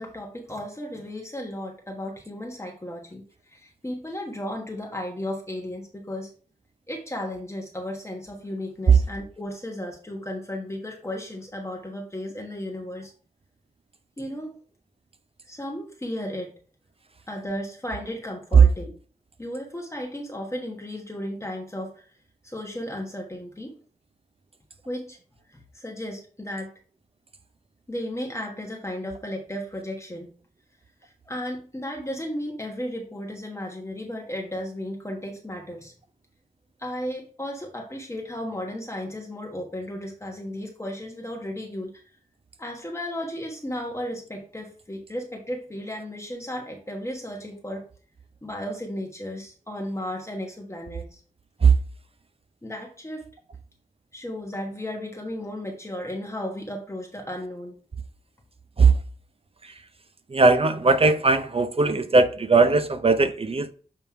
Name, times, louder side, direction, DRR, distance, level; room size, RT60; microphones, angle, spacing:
voice 1, 0.0-6.3 6.9-13.1 14.2-14.6 15.5-16.5 17.3-18.9 19.4-22.0 22.4-23.8 24.8-25.2 25.5-26.7 27.9-30.3 31.0-35.9 36.8-42.0 42.6-47.9 48.4-51.2 52.6-53.3 54.1-57.8, left 1 dB, 20° left, 1.4 m, -34 dB
voice 2, 60.3-63.7, right 3 dB, 40° right, 0.6 m, -19 dB
7.2 x 3.4 x 4.5 m
wide cardioid pair, 65°, 14 cm